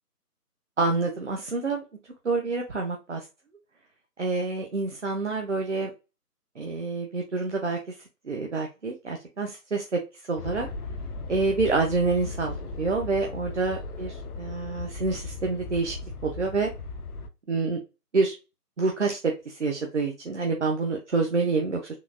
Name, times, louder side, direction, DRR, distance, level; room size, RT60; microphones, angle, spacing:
voice 1, 0.8-1.8 2.2-3.2 4.2-5.9 6.6-7.8 8.2-10.0 10.3-10.7 11.3-16.0 16.2-16.7 17.5-17.8 18.1-18.3 18.8-21.9, right 3 dB, 50° right, 1 dB, 0.5 m, -27 dB
sound 1, 10.4-17.3, left 3 dB, 70° left, 0.5 m, -37 dB
3.7 x 2.2 x 2.4 m, 0.29 s
figure-of-eight pair, 155°, 47 cm